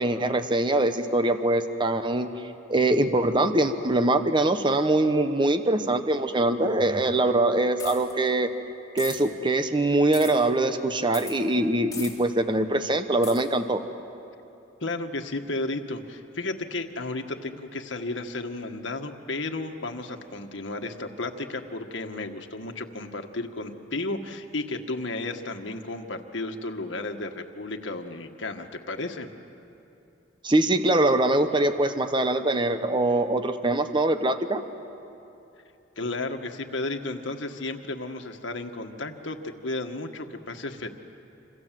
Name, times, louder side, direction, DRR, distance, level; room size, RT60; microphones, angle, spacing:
voice 1, 0.0-2.3 2.7-8.5 8.9-13.8 30.4-34.6, right 2 dB, 25° right, 8 dB, 1.0 m, -23 dB
sound 1, 7.8-8.1 9.0-9.2 10.1-10.3 11.1-11.4 11.9-12.1 13.2-13.4, left 6 dB, 20° left, 4.1 m, -37 dB
voice 2, 14.8-29.3 36.0-40.9, left 2 dB, 85° left, 4 dB, 1.7 m, -33 dB
27.5 x 27.0 x 7.7 m, 2.8 s
head